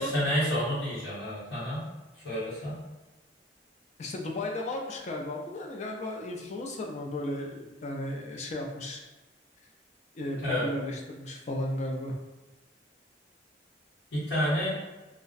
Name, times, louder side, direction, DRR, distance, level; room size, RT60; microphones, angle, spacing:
voice 1, 0.0-1.8 2.2-2.8 10.4-10.6 14.1-14.7, equal, 85° left, -10 dB, 1.0 m, -29 dB
voice 2, 4.0-9.0 10.2-12.1, left 1 dB, 40° left, 1 dB, 0.3 m, -34 dB
2.5 x 2.0 x 2.3 m, 1.1 s
head